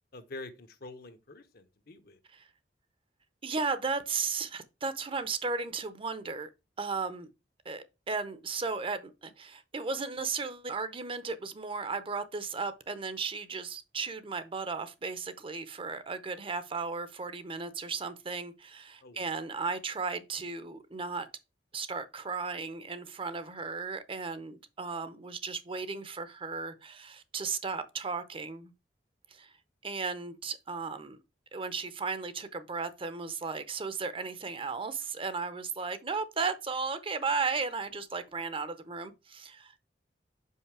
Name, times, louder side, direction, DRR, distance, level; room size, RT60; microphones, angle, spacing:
voice 1, 0.1-2.2 19.0-19.3, left 2 dB, 60° left, 0.9 m, -46 dB
voice 2, 3.4-6.5 6.8-7.3 7.6-21.3 21.7-28.7 29.3-29.5 29.8-31.2 31.5-39.8, right 4 dB, 30° right, 0.7 m, -35 dB
5.6 x 5.1 x 4.7 m
head